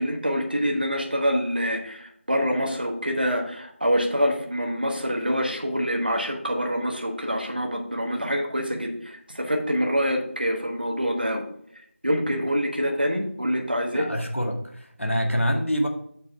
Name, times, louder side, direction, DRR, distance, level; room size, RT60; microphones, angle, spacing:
voice 1, 0.0-11.4 12.0-14.1, equal, 45° right, 2 dB, 1.4 m, -26 dB
voice 2, 13.9-15.9, equal, 70° left, 2 dB, 1.9 m, -26 dB
7.7 x 6.3 x 3.5 m, 0.67 s
figure-of-eight pair, 175°, 7 cm